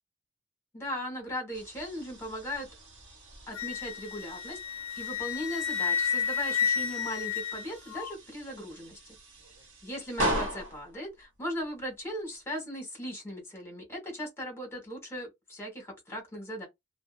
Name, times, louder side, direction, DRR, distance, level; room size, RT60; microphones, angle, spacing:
voice 1, 0.7-2.7 3.5-9.0 9.8-16.7, equal, 10° left, 1.1 m, -38 dB
sound 1, 1.5-12.4, right 1 dB, 55° right, 1.2 m, -40 dB
Wind instrument woodwind instrument, 3.5-8.1, left 7 dB, 65° left, 0.4 m, -31 dB
2.6 x 2.1 x 2.4 m
head